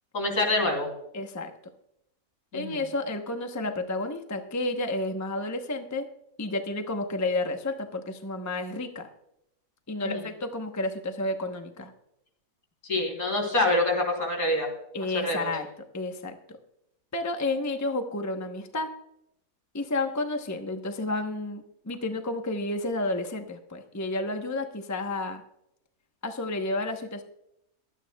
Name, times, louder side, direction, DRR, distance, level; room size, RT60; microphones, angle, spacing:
voice 1, 0.1-0.9 2.5-2.8 10.0-10.2 12.9-14.7 15.1-15.5, left 1 dB, 75° left, 1 dB, 3.8 m, -26 dB
voice 2, 1.1-1.5 2.5-6.1 6.4-9.1 9.9-11.9 14.9-15.7 15.9-16.4 17.1-18.9 19.7-25.4 26.2-27.2, left 2 dB, 15° left, 5 dB, 0.8 m, -31 dB
22.5 x 9.2 x 2.3 m, 0.79 s
omnidirectional pair, 1.5 m